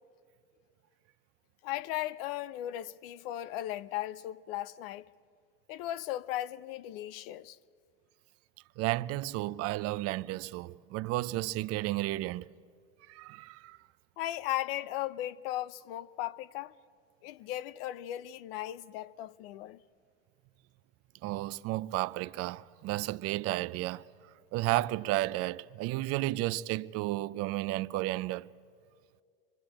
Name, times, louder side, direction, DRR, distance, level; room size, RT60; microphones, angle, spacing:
voice 1, 1.6-5.1 5.7-7.6 14.2-16.7 17.2-19.8, left 14 dB, 75° left, 0.7 m, -37 dB
voice 2, 8.8-12.5 13.1-13.8 21.2-24.0 24.5-28.5, right 17 dB, 55° right, 0.6 m, -32 dB
25.5 x 23.5 x 8.9 m
supercardioid pair, 105°, 29 cm